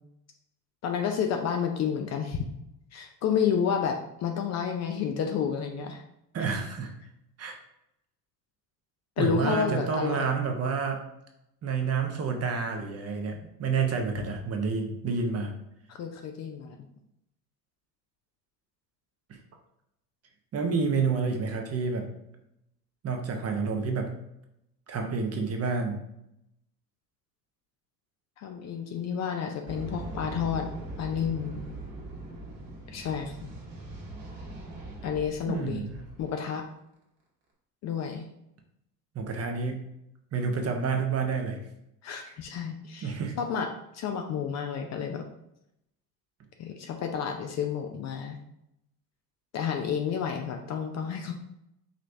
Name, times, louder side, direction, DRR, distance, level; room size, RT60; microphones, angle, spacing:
voice 1, 0.8-2.4 2.9-6.0 9.2-10.3 15.9-16.9 28.4-30.7 31.0-31.6 32.9-33.3 35.0-35.9 36.2-36.6 37.8-38.3 42.0-43.7 43.9-45.2 46.6-48.4 49.5-51.3, left 7 dB, 35° left, 4 dB, 0.5 m, -30 dB
voice 2, 6.3-6.9 7.4-7.6 9.2-11.0 11.6-15.5 19.3-19.4 20.5-22.1 23.0-24.1 24.9-26.0 35.4-35.9 39.1-39.8 40.3-41.6 42.2-42.3 43.0-43.3, right 5 dB, 30° right, 4 dB, 0.8 m, -29 dB
sound 1, 29.7-36.4, right 1 dB, 55° right, 1.4 m, -41 dB
5.1 x 3.1 x 2.6 m, 0.82 s
figure-of-eight pair, 65°, 49 cm